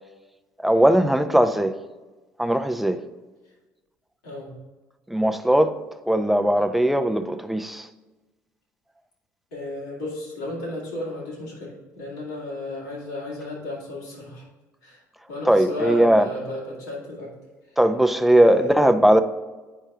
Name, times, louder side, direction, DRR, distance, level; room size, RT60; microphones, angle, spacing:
voice 1, 0.6-1.7 2.4-3.0 5.1-5.8 6.1-7.9 15.5-16.3 17.8-19.2, right 1 dB, ahead, 0.6 m, -19 dB
voice 2, 4.2-4.6 9.5-14.5 14.8-15.0 15.3-17.3 18.4-18.9, left 1 dB, 85° left, 2.5 m, -33 dB
8.1 x 5.4 x 3.6 m
hypercardioid pair, 55°, 9 cm